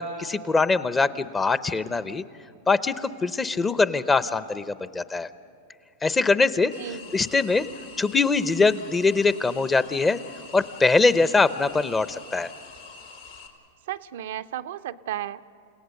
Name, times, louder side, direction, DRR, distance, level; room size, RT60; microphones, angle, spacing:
voice 1, 0.0-2.2 2.7-5.3 6.0-6.7 7.1-7.7 8.0-10.2 10.5-12.5, left 3 dB, 15° left, 14 dB, 0.7 m, -22 dB
sound 1, 6.7-13.5, left 4 dB, 85° left, 2.9 m, -45 dB
voice 2, 6.8-7.1 13.9-15.4, right 12 dB, 70° right, 10 dB, 0.5 m, -34 dB
30.0 x 17.5 x 6.5 m, 2.3 s
hypercardioid pair, 110°, 0 cm